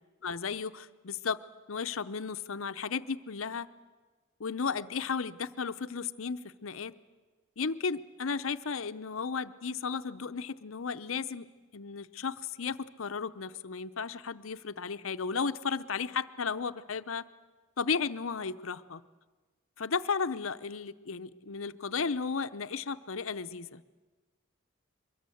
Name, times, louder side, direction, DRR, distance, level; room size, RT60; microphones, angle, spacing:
voice 1, 0.2-1.4 1.7-3.7 4.4-6.9 7.6-11.5 11.7-17.2 17.8-19.0 19.8-23.8, left 5 dB, 80° left, 12 dB, 0.8 m, -34 dB
23.5 x 22.5 x 7.9 m, 1.3 s
head